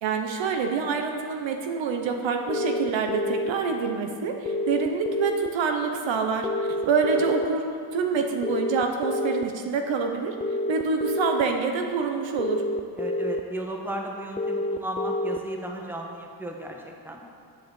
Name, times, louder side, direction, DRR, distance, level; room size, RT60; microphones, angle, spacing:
voice 1, 0.0-6.5 6.8-7.7 7.9-10.4 10.7-12.6, right 5 dB, 75° right, 4 dB, 1.1 m, -26 dB
sound 1, 2.5-3.5 4.5-5.5 6.4-7.5 8.4-9.4 10.4-11.4 12.4-13.4 14.4-15.4, left 2 dB, 15° left, 0.3 m, -28 dB
voice 2, 13.0-16.8 17.0-17.2, right 1 dB, 5° right, 0 dB, 1.2 m, -34 dB
7.7 x 7.1 x 7.0 m, 2.3 s
cardioid pair, 105°, 47 cm